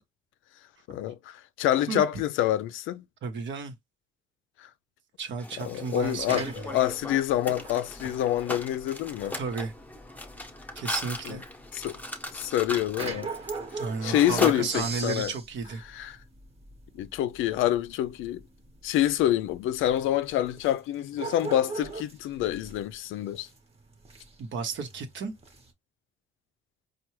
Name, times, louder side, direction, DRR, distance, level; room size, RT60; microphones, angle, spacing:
voice 1, 0.9-3.0 4.6-4.7 5.6-9.4 11.3-11.4 11.7-12.0 12.3-13.3 14.0-15.3 15.9-16.2 17.0-18.4 18.8-23.5, left 12 dB, 85° left, 0.4 m, -27 dB
voice 2, 3.2-3.7 5.2-6.8 9.4-9.7 10.7-11.4 13.8-15.8 24.4-25.3, right 5 dB, 70° right, 0.9 m, -33 dB
Mechanisms, 5.4-15.2, left 1 dB, 10° left, 0.8 m, -38 dB
sound 1, 6.1-25.7, right 4 dB, 30° right, 1.0 m, -42 dB
4.5 x 2.3 x 3.0 m
cardioid pair, 90°, 20 cm